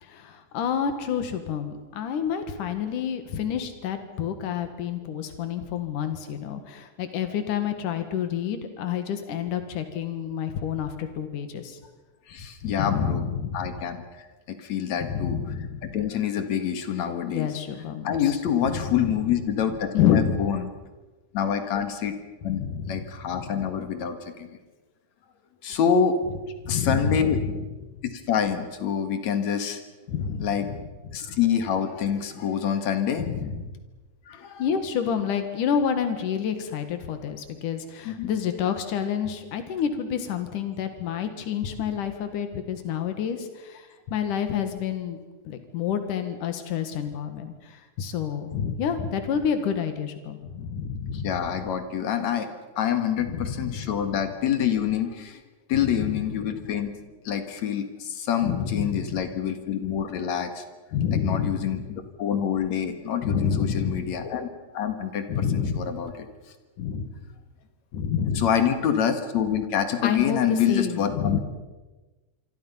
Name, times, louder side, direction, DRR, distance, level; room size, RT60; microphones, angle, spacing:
voice 1, 0.0-11.8 12.6-13.7 15.0-15.9 17.3-18.4 18.7-19.1 19.9-20.5 22.5-23.6 26.6-27.6 30.1-30.8 31.3-31.4 33.2-33.7 34.6-45.2 45.4-51.6 53.2-53.9 55.8-56.1 58.4-59.2 60.9-61.8 63.2-64.1 65.3-65.9 66.8-67.1 67.9-68.5 70.0-71.4, left 7 dB, 80° left, 8 dB, 3.3 m, -29 dB
voice 2, 12.3-13.2 13.5-15.4 15.9-17.5 18.0-20.6 21.3-22.1 22.4-24.5 25.6-26.2 26.7-27.4 28.1-29.8 30.4-30.7 31.1-33.3 34.3-34.6 38.0-38.3 51.1-52.5 52.8-55.4 55.7-56.9 57.2-60.6 61.1-64.5 64.7-66.3 68.4-71.4, left 8 dB, 65° left, 8 dB, 2.9 m, -26 dB
26.5 x 25.0 x 5.6 m, 1.2 s
omnidirectional pair, 3.6 m